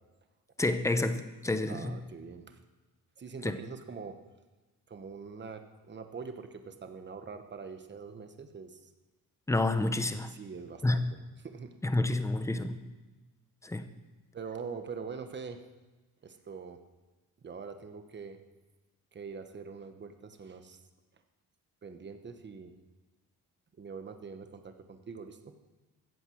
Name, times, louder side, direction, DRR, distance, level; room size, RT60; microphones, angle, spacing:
voice 1, 0.6-2.0 3.4-3.6 9.5-10.3 10.8-11.1 11.8-12.8 13.6-13.9, left 2 dB, 10° left, 10 dB, 0.7 m, -29 dB
voice 2, 1.7-2.6 3.2-4.1 4.9-8.8 10.3-11.2 11.4-11.8 14.3-15.6 16.2-16.8 17.4-18.4 19.1-20.8 21.8-22.7 23.8-25.5, right 5 dB, 30° right, 8 dB, 1.1 m, -43 dB
14.5 x 9.0 x 7.8 m, 1.2 s
cardioid pair, 155°, 39 cm